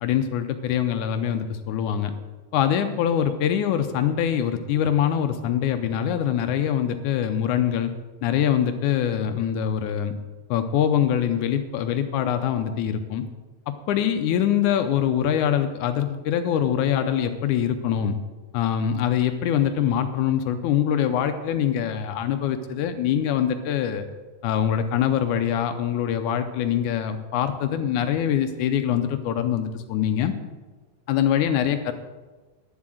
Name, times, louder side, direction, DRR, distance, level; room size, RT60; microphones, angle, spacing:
voice 1, 0.0-2.1 2.5-7.9 8.2-10.1 10.5-13.2 13.7-18.2 18.5-24.1 24.4-30.3 31.1-31.9, left 9 dB, 80° left, 8 dB, 2.0 m, -24 dB
10.5 x 7.4 x 7.6 m, 1.2 s
omnidirectional pair, 3.8 m